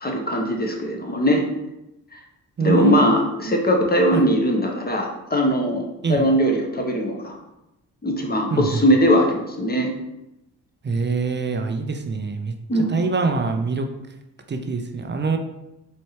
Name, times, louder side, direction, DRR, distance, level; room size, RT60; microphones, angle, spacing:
voice 1, 0.0-1.4 2.6-7.4 8.0-9.9 12.7-13.0, equal, 20° left, 1 dB, 1.0 m, -20 dB
voice 2, 2.6-3.5 4.1-4.3 6.0-6.3 8.5-8.8 10.8-12.5 12.9-13.9 14.5-15.4, right 4 dB, 25° right, 6 dB, 0.5 m, -24 dB
4.3 x 3.1 x 3.1 m, 0.91 s
supercardioid pair, 55°, 41 cm